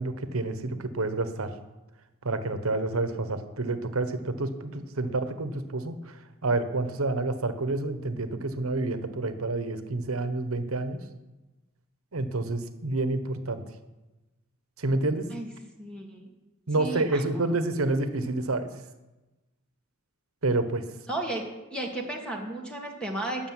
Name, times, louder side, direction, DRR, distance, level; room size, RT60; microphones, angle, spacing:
voice 1, 0.0-1.5 2.2-6.0 6.4-11.0 12.1-13.6 14.8-15.3 16.7-18.7 20.4-20.8, right 2 dB, 85° right, 10 dB, 1.2 m, -28 dB
voice 2, 15.8-16.3 16.8-17.2 21.1-21.4 21.7-23.5, right 2 dB, 5° left, 1 dB, 1.6 m, -33 dB
13.5 x 6.8 x 9.5 m, 1.1 s
head